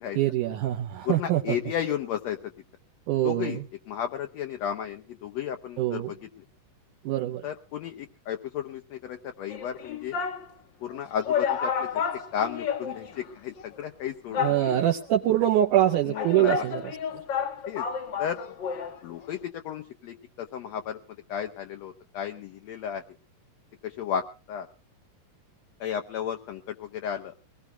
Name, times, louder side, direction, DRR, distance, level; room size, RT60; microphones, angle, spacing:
voice 1, 0.2-1.6 3.1-3.6 5.8-6.1 7.1-7.4 14.4-16.8, right 12 dB, 75° right, 4 dB, 2.2 m, -24 dB
voice 2, 1.0-2.5 3.2-3.6 3.9-6.3 7.4-10.2 10.8-12.0 12.3-14.6 16.0-16.7 17.7-17.9 18.2-18.4 19.0-23.0 23.8-24.7 25.8-27.3, left 9 dB, 70° left, 6 dB, 1.7 m, -33 dB
sound 1, 9.5-10.5 10.9-11.0 11.3-13.3 13.6-13.7 14.3-15.1 15.8-19.0 19.2-19.3, left 7 dB, 90° left, 1.0 m, -31 dB
23.0 x 19.0 x 2.3 m, 0.34 s
omnidirectional pair, 3.9 m